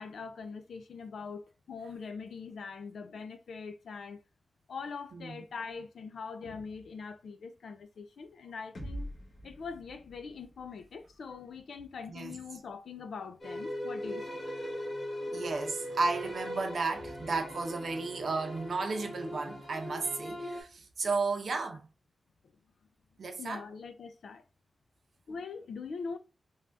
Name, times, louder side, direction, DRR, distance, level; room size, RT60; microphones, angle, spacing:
voice 1, 0.0-1.4 1.7-4.2 4.7-9.1 9.4-14.3 15.3-15.4 23.4-24.4 25.3-26.2, left 5 dB, 90° left, 0.4 m, -42 dB
sound 1, 8.7-12.7, equal, 70° left, 1.1 m, -46 dB
sound 2, 13.4-20.6, left 1 dB, 45° left, 1.7 m, -40 dB
voice 2, 15.3-21.9 23.2-23.7, right 3 dB, 70° right, 0.6 m, -33 dB
3.4 x 2.3 x 2.5 m
wide cardioid pair, 100°, 0 cm